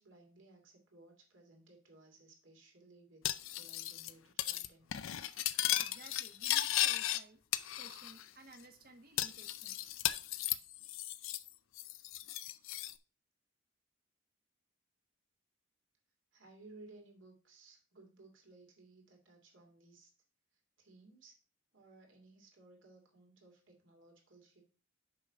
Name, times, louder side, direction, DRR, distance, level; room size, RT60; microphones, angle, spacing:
voice 1, 0.0-3.2 3.5-4.9 16.3-20.1 20.8-21.4 21.7-24.7, right 2 dB, 70° right, 1 dB, 2.7 m, -60 dB
Cutlery silverware, 3.2-4.1 4.4-4.7 4.9-7.2 7.5-8.2 8.5-8.6 9.2-11.5 11.8-12.9, left 13 dB, 85° left, 0.5 m, -35 dB
voice 2, 5.8-7.4 7.8-10.0, right 2 dB, 50° right, 6 dB, 1.4 m, -57 dB
6.8 x 5.7 x 4.9 m, 0.36 s
head